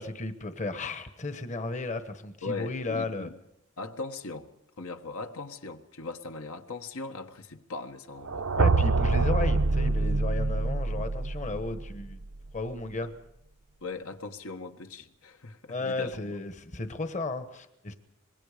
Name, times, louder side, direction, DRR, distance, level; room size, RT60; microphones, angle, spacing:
voice 1, 0.0-3.3 8.6-12.2 12.5-13.1 15.7-17.9, left 2 dB, 35° left, 9 dB, 1.2 m, -34 dB
voice 2, 2.4-3.4 3.8-4.5 4.8-8.5 9.1-9.2 13.0-13.1 13.8-16.4, left 3 dB, 75° left, 6 dB, 1.4 m, -39 dB
sound 1, 8.2-12.2, right 3 dB, 75° right, 0.8 m, -26 dB
25.0 x 21.0 x 5.1 m, 0.83 s
head